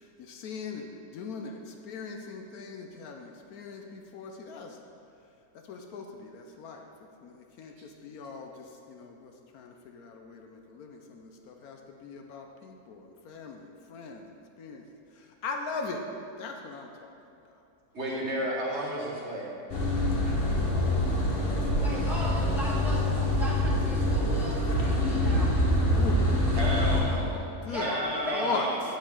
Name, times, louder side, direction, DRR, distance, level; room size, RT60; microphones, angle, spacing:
voice 1, 0.0-4.8 5.7-6.9 7.2-14.8 15.1-16.0 16.4-17.1 25.9-26.3 27.0-27.2 27.7-27.9 28.2-28.7, left 5 dB, 70° left, 3 dB, 1.1 m, -40 dB
voice 2, 17.9-19.5 26.5-27.3 27.8-28.8, right 1 dB, 45° right, -4 dB, 1.4 m, -32 dB
sound 1, 19.7-27.0, left 1 dB, 40° left, 1.2 m, -25 dB
voice 3, 21.7-25.7 27.7-28.7, equal, ahead, -7 dB, 1.4 m, -37 dB
8.9 x 7.4 x 3.6 m, 2.6 s
omnidirectional pair, 1.7 m